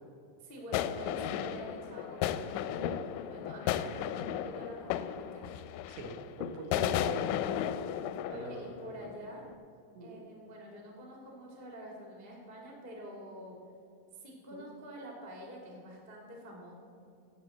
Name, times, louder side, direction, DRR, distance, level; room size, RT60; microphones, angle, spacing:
voice 1, 0.4-5.5 8.3-9.4 10.0-13.6 14.1-16.7, equal, 25° right, -1 dB, 1.2 m, -47 dB
sound 1, 0.7-9.2 9.5-9.6, left 10 dB, 85° left, 2.7 m, -35 dB
voice 2, 5.9-7.1 8.3-9.0 10.0-10.2 14.5-14.6, right 1 dB, 70° right, 1 dB, 3.4 m, -43 dB
11.0 x 8.1 x 7.7 m, 2.6 s
omnidirectional pair, 5.6 m